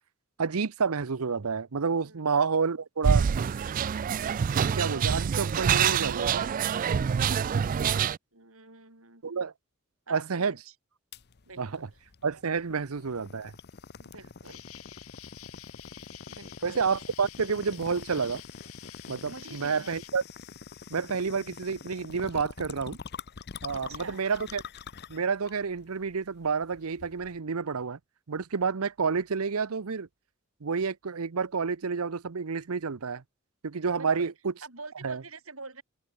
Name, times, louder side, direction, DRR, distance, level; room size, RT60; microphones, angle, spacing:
voice 1, 0.4-3.2 4.7-6.6 7.9-8.1 9.2-9.5 10.1-10.5 11.6-11.8 12.2-13.5 16.6-18.4 19.1-20.2 20.9-23.0 23.6-24.6 25.1-28.0 28.3-30.1 30.6-33.2 33.6-34.5 35.0-35.2, right 5 dB, 85° right, 0.8 m, -29 dB
sound 1, 3.0-8.2, right 7 dB, 40° right, 0.3 m, -26 dB
voice 2, 8.3-9.4 10.1-10.7 11.5-12.0 12.7-12.9 14.0-14.6 16.3-16.7 19.3-19.9 23.7-24.2 34.0-34.3 34.6-35.8, right 3 dB, 70° right, 7.6 m, -46 dB
sound 2, 11.1-27.4, left 5 dB, 50° left, 0.8 m, -45 dB
Insect, 14.4-20.1, left 13 dB, 80° left, 2.0 m, -49 dB
head